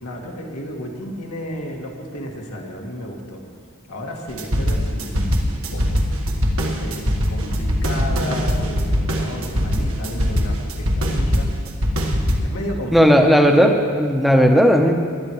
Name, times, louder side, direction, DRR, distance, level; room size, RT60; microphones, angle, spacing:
voice 1, 0.0-3.4 3.9-6.1 6.6-7.0 7.3-11.6 12.4-13.3, equal, 85° left, -1 dB, 2.0 m, -32 dB
sound 1, 4.3-12.4, equal, 70° right, 1.4 m, -21 dB
voice 2, 12.9-14.9, equal, ahead, 3 dB, 0.8 m, -14 dB
19.5 x 11.5 x 3.1 m, 2.1 s
head